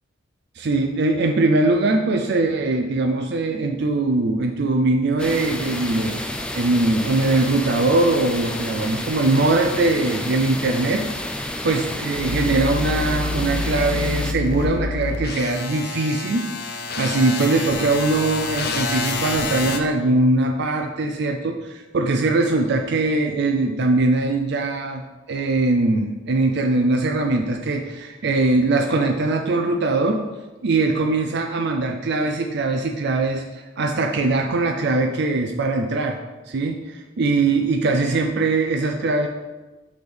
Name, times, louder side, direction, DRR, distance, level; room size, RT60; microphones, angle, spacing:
voice 1, 0.6-6.2 6.5-25.0 25.3-30.2 30.6-36.2 36.5-39.3, right 2 dB, 60° right, 4 dB, 0.4 m, -21 dB
sound 1, 5.2-14.3, left 1 dB, 5° left, 0.3 m, -30 dB
sound 2, 12.2-19.8, left 3 dB, 50° left, 0.6 m, -27 dB
6.1 x 3.6 x 5.1 m, 1.1 s
head